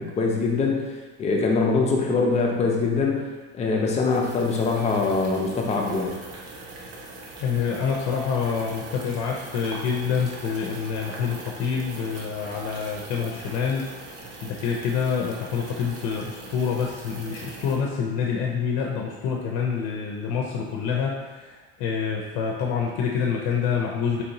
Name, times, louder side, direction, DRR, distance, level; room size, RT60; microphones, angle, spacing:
voice 1, 0.0-6.2, left 4 dB, 20° left, 0 dB, 0.4 m, -23 dB
sound 1, 4.0-17.8, right 2 dB, 50° right, 0.7 m, -41 dB
voice 2, 7.4-24.2, left 6 dB, 75° left, -1 dB, 0.5 m, -27 dB
4.2 x 2.8 x 2.6 m, 1.2 s
cardioid pair, 165°, 31 cm